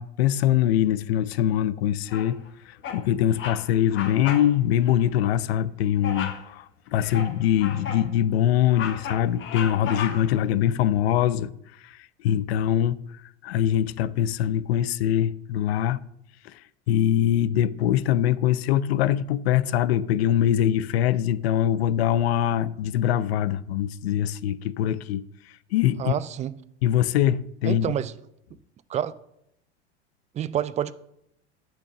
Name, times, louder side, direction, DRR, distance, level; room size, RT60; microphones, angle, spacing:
voice 1, 0.0-2.4 2.7-11.5 11.8-13.0 13.4-16.0 16.4-16.5 16.9-25.2 25.7-26.1 26.8-27.9, left 11 dB, 65° left, 0.5 m, -23 dB
Bird vocalization bird call bird song, 2.1-2.5 2.8-3.1 3.3-3.6 3.9-4.5 4.8-5.0 6.0-6.5 6.9-8.1 8.5-10.4, left 7 dB, 35° left, 1.3 m, -34 dB
voice 2, 26.0-26.5 27.6-28.1 28.9-29.1 30.3-30.9, right 10 dB, 20° right, 0.4 m, -28 dB
8.4 x 6.2 x 6.9 m
figure-of-eight pair, 85°, 34 cm